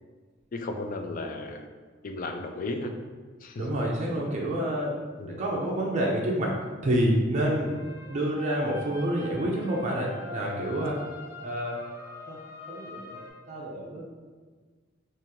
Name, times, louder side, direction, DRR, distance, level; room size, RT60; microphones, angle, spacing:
voice 1, 0.5-1.7 2.0-3.0 3.4-3.8 5.2-5.4 7.5-7.8 10.5-10.9, left 2 dB, 40° left, 5 dB, 0.3 m, -35 dB
voice 2, 3.6-6.6 6.8-7.7 8.1-11.0 11.4-11.8 12.3-12.4 12.7-13.2 13.5-14.1, right 1 dB, 35° right, -2 dB, 0.5 m, -28 dB
sound 1, 7.6-13.3, left 2 dB, 15° right, 1.1 m, -43 dB
3.6 x 3.0 x 2.9 m, 1.5 s
head